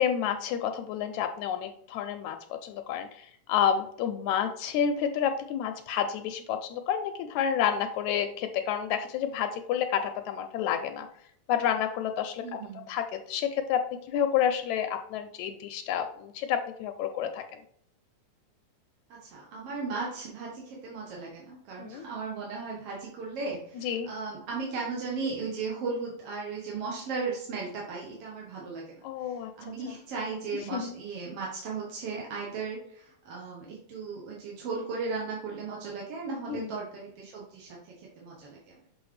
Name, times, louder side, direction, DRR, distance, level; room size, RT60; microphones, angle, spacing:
voice 1, 0.0-2.4 2.6-11.1 11.5-12.4 12.9-13.8 14.1-17.4 21.8-22.1 23.8-24.1 29.0-29.5 30.7-30.9 36.5-36.7, left 9 dB, 80° left, 7 dB, 1.8 m, -29 dB
voice 2, 12.4-12.9 19.1-29.0 29.3-38.7, right 4 dB, 60° right, -3 dB, 2.0 m, -36 dB
6.9 x 4.5 x 3.2 m, 0.66 s
omnidirectional pair, 3.5 m